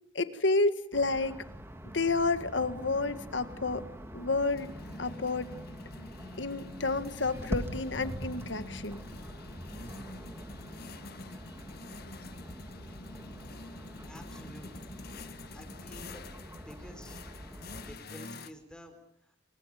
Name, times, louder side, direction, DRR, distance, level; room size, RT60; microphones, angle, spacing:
voice 1, 0.2-1.4 1.9-3.8 4.1-4.7 5.0-5.5 6.4-9.0, left 3 dB, 80° left, 11 dB, 1.8 m, -30 dB
sound 1, 0.9-17.9, equal, 15° right, 2.5 m, -44 dB
sound 2, 3.5-18.5, left 2 dB, 60° left, 1.6 m, -47 dB
voice 2, 14.1-14.9 15.5-16.2 16.6-19.4, equal, 5° left, 7 dB, 4.6 m, -51 dB
29.0 x 24.0 x 5.2 m, 0.73 s
head